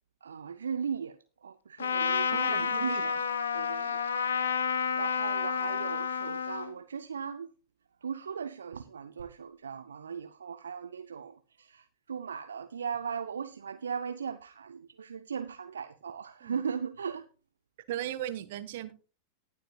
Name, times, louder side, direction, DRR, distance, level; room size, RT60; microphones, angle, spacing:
voice 1, 0.2-3.2 3.5-4.1 4.6-7.5 8.0-17.3, right 6 dB, 70° right, 0.5 m, -38 dB
Trumpet, 1.8-6.7, left 6 dB, 70° left, 0.9 m, -30 dB
voice 2, 2.3-3.1 16.4-16.6 17.9-18.9, right 12 dB, 55° right, 1.0 m, -37 dB
19.0 x 7.5 x 2.3 m
figure-of-eight pair, 90°, 0 cm